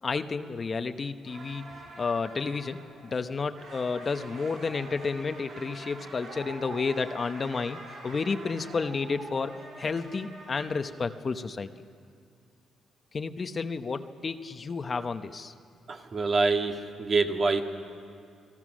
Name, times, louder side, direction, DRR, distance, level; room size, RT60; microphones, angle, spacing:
voice 1, 0.0-2.8 3.1-11.7 13.1-15.5, left 4 dB, 35° left, 9 dB, 0.9 m, -31 dB
sound 1, 1.2-10.8, right 2 dB, 90° right, 7.9 m, -45 dB
voice 2, 15.9-17.6, right 3 dB, 45° right, 3 dB, 1.9 m, -26 dB
28.5 x 19.5 x 6.3 m, 2.3 s
cardioid pair, 90°, 0 cm